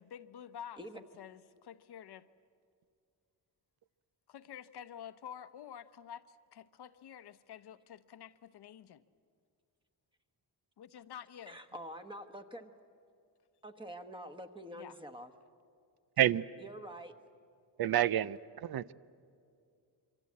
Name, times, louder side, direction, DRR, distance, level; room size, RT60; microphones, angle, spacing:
voice 1, 0.0-2.3 4.3-9.0 10.8-11.6 14.7-15.0, left 9 dB, 65° left, 12 dB, 0.9 m, -49 dB
voice 2, 11.5-12.7 13.6-15.3 16.6-17.1, right 1 dB, 10° right, 7 dB, 1.3 m, -46 dB
voice 3, 17.8-18.9, right 11 dB, 60° right, 17 dB, 0.6 m, -29 dB
27.0 x 24.5 x 8.5 m, 2.4 s
wide cardioid pair, 150°, 42 cm